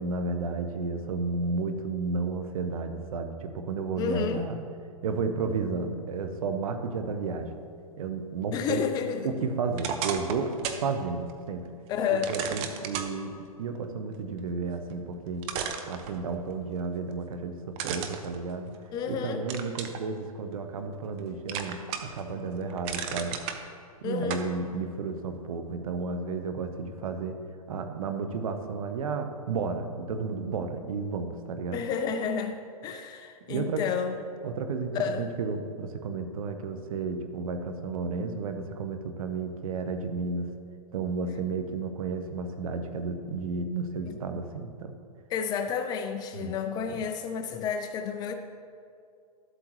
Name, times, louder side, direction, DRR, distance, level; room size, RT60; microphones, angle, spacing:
voice 1, 0.0-4.6 5.0-7.5 8.0-8.8 9.2-11.7 12.3-15.5 15.9-18.7 19.1-23.4 24.0-27.4 27.7-31.8 33.5-33.8 34.4-40.5 40.9-44.9 46.4-46.5 46.9-47.0, right 4 dB, 65° right, 7 dB, 1.0 m, -32 dB
voice 2, 4.0-4.4 8.5-9.5 11.9-12.3 18.9-19.5 24.0-24.4 31.7-34.1 34.9-35.3 44.1-44.4 45.3-48.3, left 7 dB, 20° left, 7 dB, 0.4 m, -31 dB
sound 1, 9.7-10.9 11.3-11.4 12.2-13.1 14.9-15.0 15.4-16.5 17.8-19.0 19.5-20.0 20.5-21.2 21.5-22.2 22.6-23.6 24.3-24.5, right 8 dB, 30° right, 0.7 m, -34 dB
13.0 x 7.9 x 3.1 m, 2.4 s
hypercardioid pair, 135°, 19 cm